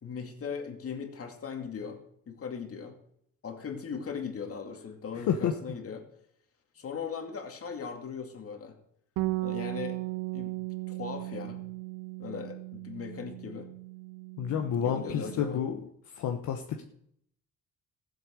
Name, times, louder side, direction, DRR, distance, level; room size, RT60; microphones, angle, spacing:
voice 1, 0.0-2.0 2.3-2.9 3.4-6.1 6.7-8.7 9.4-10.0 10.3-10.5 10.9-11.6 12.2-13.7 14.8-15.6, left 6 dB, 50° left, 4 dB, 2.5 m, -38 dB
voice 2, 5.1-5.5 14.4-15.8 16.1-16.8, left 8 dB, 75° left, 4 dB, 1.1 m, -30 dB
Bass guitar, 9.2-15.4, right 20 dB, 85° right, 0.7 m, -37 dB
15.0 x 8.0 x 6.5 m, 0.71 s
cardioid pair, 90°, 30 cm